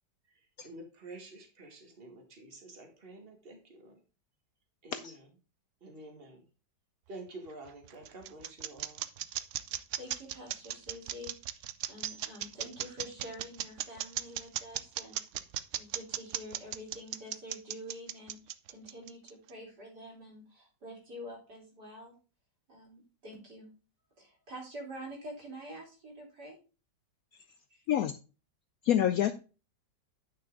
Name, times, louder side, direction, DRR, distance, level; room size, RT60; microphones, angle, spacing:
voice 1, 0.3-4.0 4.8-5.3 5.8-6.4 7.1-9.0, right 2 dB, 35° right, 4 dB, 2.0 m, -49 dB
sound 1, 7.5-19.5, right 11 dB, 85° right, 0.6 m, -36 dB
voice 2, 9.9-15.2 15.7-22.1 22.7-23.7 24.2-26.6 27.7-27.9, equal, 65° right, -2 dB, 3.9 m, -47 dB
voice 3, 28.8-29.3, left 11 dB, 70° left, 10 dB, 0.9 m, -26 dB
9.5 x 6.0 x 3.6 m, 0.33 s
omnidirectional pair, 1.9 m